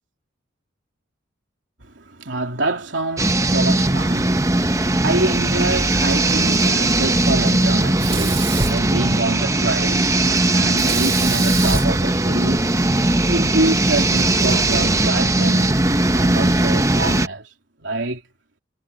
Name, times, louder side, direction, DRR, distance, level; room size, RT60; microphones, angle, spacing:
voice 1, 1.8-12.9 13.2-15.8 16.1-17.5 17.8-18.2, right 2 dB, 65° right, 3.6 m, -26 dB
sound 1, 3.2-17.3, right 2 dB, 15° right, 1.1 m, -19 dB
Sink (filling or washing), 8.0-9.6 10.7-13.0, right 4 dB, 30° right, 3.1 m, -28 dB
head